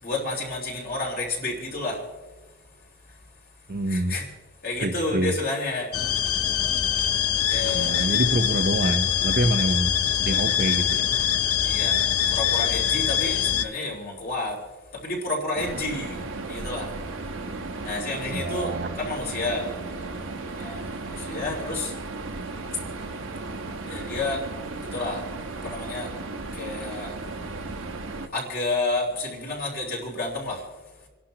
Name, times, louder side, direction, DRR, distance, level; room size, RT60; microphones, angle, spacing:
voice 1, 0.0-2.0 3.9-4.3 4.6-5.9 7.5-8.1 11.6-14.6 14.9-16.9 17.8-18.7 19.0-19.7 20.5-21.9 23.9-24.4 24.8-25.3 25.6-26.1 26.5-27.1 28.3-30.6, left 2 dB, 45° left, 3.6 m, -30 dB
voice 2, 3.7-4.1 4.8-5.3 7.7-11.3 18.3-18.9 26.0-26.1, right 1 dB, 45° right, 0.8 m, -27 dB
sound 1, 5.9-13.6, left 9 dB, 85° left, 0.6 m, -24 dB
sound 2, 15.6-28.3, right 3 dB, 65° right, 1.2 m, -35 dB
29.5 x 11.5 x 3.0 m
head